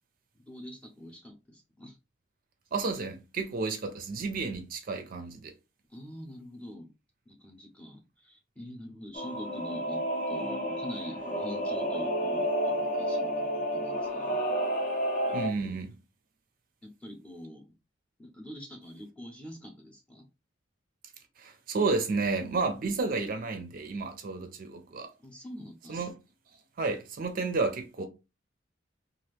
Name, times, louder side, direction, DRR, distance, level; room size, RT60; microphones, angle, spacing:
voice 1, 0.5-2.0 5.9-6.9 7.3-14.5 15.3-15.7 16.8-17.7 18.2-20.3 25.2-26.0, equal, 5° left, 0.7 m, -45 dB
voice 2, 2.7-5.5 15.3-15.9 21.4-25.1 25.9-26.1 26.8-28.0, right 3 dB, 45° right, 0.4 m, -31 dB
Singing / Musical instrument, 9.1-15.5, equal, 40° left, 0.7 m, -30 dB
2.7 x 2.4 x 3.2 m
head